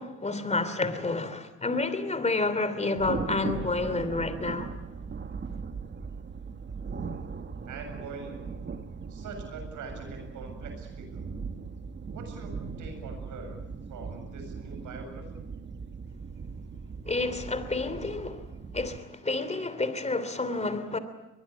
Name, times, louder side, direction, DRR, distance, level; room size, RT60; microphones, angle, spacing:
voice 1, 0.0-4.7 17.1-18.4 18.7-21.0, left 3 dB, 20° left, 3.1 m, -29 dB
Thunder, 2.9-19.0, right 5 dB, 35° right, 1.8 m, -39 dB
voice 2, 6.8-7.2 7.7-8.4 9.1-11.3 12.1-13.6 13.9-15.4, right 3 dB, 80° right, 7.5 m, -43 dB
23.0 x 21.0 x 8.5 m
cardioid pair, 90°, 30 cm